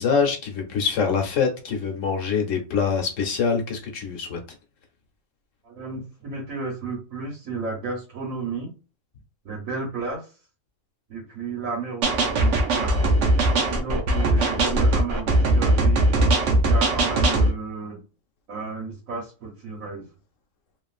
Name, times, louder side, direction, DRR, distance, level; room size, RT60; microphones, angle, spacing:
voice 1, 0.0-4.4, left 6 dB, 75° left, 1.1 m, -24 dB
voice 2, 5.6-8.7 9.4-10.3 11.1-13.2 13.7-16.2 16.6-18.0 18.5-20.1, right 4 dB, 85° right, 1.4 m, -33 dB
sound 1, 12.0-17.5, right 1 dB, 65° right, 1.0 m, -20 dB
3.1 x 2.4 x 2.4 m
omnidirectional pair, 1.4 m